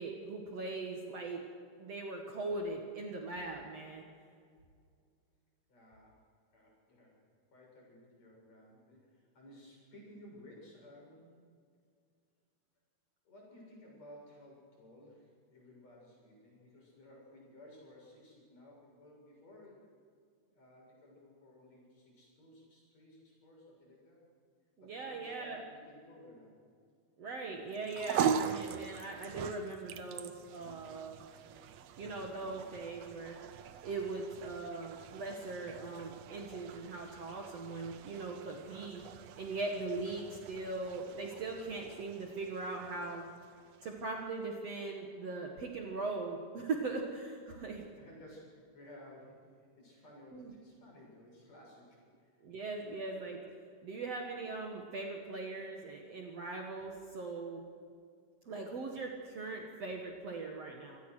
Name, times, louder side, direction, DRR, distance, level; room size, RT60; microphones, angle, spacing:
voice 1, 0.0-1.4 1.8-4.0 24.8-25.6 27.2-31.2 32.0-33.4 33.8-39.0 39.4-43.3 43.8-47.8 50.3-50.5 52.4-53.4 53.8-57.6 58.5-61.0, right 3 dB, 50° right, 1 dB, 2.4 m, -40 dB
voice 2, 5.7-6.2 6.5-7.2 7.5-11.5 13.2-19.9 20.5-24.2 24.8-26.6 47.9-52.4, left 1 dB, 45° left, -2 dB, 8.3 m, -56 dB
sound 1, 27.7-44.2, right 7 dB, 75° right, 1.5 m, -41 dB
27.0 x 17.5 x 6.4 m, 2.2 s
omnidirectional pair, 4.3 m